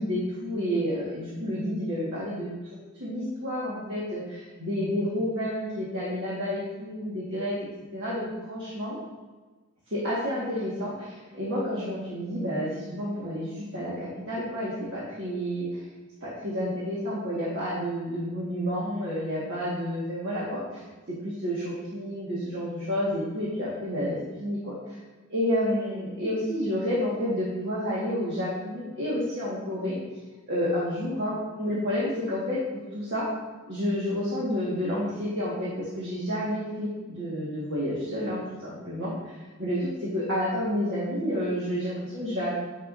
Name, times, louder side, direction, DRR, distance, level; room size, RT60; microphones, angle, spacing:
voice 1, 0.0-2.5 3.0-7.6 7.9-9.0 9.9-15.8 16.2-20.8 21.1-25.0 25.3-30.0 30.5-32.6 32.9-33.3 33.7-42.6, equal, 55° right, -7 dB, 1.6 m, -30 dB
9.0 x 5.8 x 2.6 m, 1.3 s
head